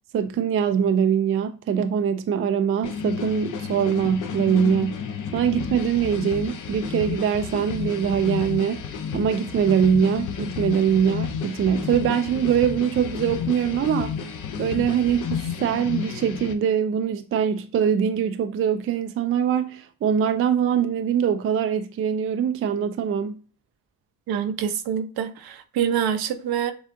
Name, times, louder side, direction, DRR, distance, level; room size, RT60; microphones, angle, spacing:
voice 1, 0.1-5.1 5.3-8.8 9.1-14.1 14.6-23.4, right 8 dB, 35° right, 0.4 m, -23 dB
sound 1, 2.8-16.5, left 7 dB, 55° left, 0.7 m, -31 dB
voice 2, 24.3-26.7, right 8 dB, 70° right, 0.7 m, -26 dB
6.8 x 2.4 x 2.6 m
cardioid pair, 105°, 39 cm